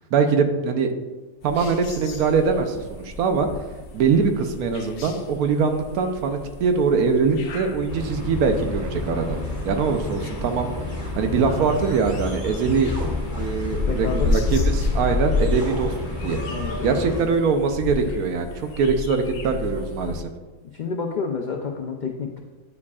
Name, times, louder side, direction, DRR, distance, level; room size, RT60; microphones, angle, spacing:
voice 1, 0.1-0.9 1.4-3.5 3.9-9.4 9.6-10.7 11.2-12.9 13.4-15.9 16.2-16.4 16.8-20.3, right 5 dB, 90° right, 6 dB, 1.2 m, -22 dB
sound 1, 1.4-20.2, left 3 dB, 60° left, 0.7 m, -31 dB
sound 2, 7.9-17.2, left 2 dB, 5° right, 1.9 m, -31 dB
sound 3, 11.3-14.4 14.7-14.8 15.0-15.1 16.1-18.2, equal, 35° right, 2.1 m, -42 dB
voice 2, 13.8-14.3 16.5-17.3 20.1-20.2 20.7-22.4, left 5 dB, 85° left, 2 dB, 0.4 m, -29 dB
9.4 x 4.8 x 2.3 m, 1.2 s
omnidirectional pair, 1.5 m